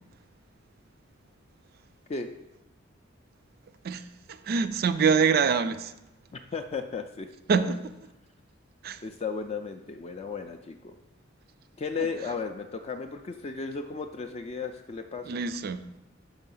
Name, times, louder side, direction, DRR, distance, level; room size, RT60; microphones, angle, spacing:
voice 1, 4.3-5.9 7.5-7.8 8.8-9.0 15.3-15.9, right 5 dB, 50° right, 0.3 m, -25 dB
voice 2, 6.3-7.3 7.6-7.7 9.0-11.0 11.8-15.4, left 5 dB, 30° left, 0.3 m, -35 dB
5.6 x 4.8 x 5.4 m
head